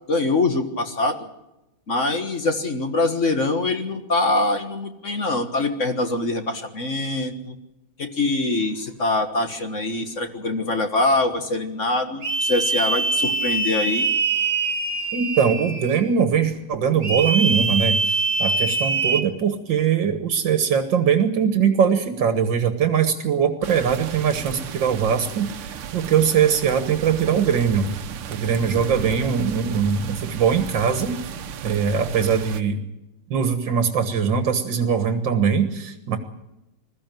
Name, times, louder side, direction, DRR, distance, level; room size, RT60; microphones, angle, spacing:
voice 1, 0.1-1.3 1.9-7.5 8.0-14.1, left 2 dB, 40° left, 7 dB, 1.7 m, -24 dB
sound 1, 12.2-16.1 17.0-19.2, right 3 dB, 25° right, 1.1 m, -23 dB
voice 2, 15.1-28.0 28.3-31.2 31.6-32.8 33.3-36.2, right 7 dB, 60° right, 8 dB, 2.0 m, -21 dB
sound 2, 23.6-32.6, right 7 dB, 90° right, 1.9 m, -34 dB
21.0 x 14.5 x 9.2 m, 0.94 s
omnidirectional pair, 2.4 m